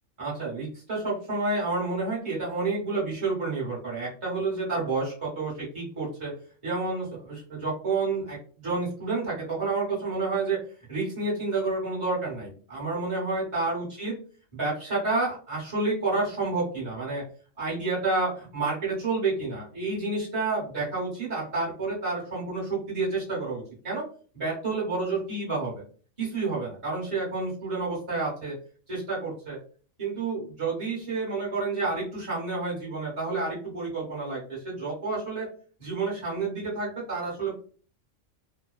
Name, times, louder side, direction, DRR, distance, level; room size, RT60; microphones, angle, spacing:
voice 1, 0.2-6.3 6.6-10.6 10.9-14.2 14.5-17.2 17.6-24.0 24.3-25.8 26.2-28.5 28.9-29.6 30.0-35.5 35.8-37.5, right 3 dB, 25° right, -6 dB, 1.1 m, -29 dB
2.8 x 2.1 x 2.3 m, 0.42 s
omnidirectional pair, 1.3 m